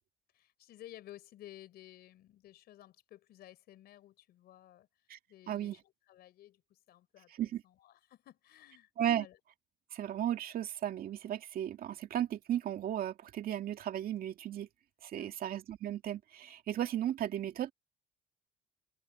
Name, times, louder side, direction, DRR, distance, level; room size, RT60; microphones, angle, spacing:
voice 1, 0.3-4.9 5.3-9.4 15.2-15.4, left 13 dB, 70° left, 4.6 m, -55 dB
voice 2, 9.9-14.7 15.0-17.7, right 11 dB, 60° right, 2.2 m, -35 dB
cardioid pair, 110°, 17 cm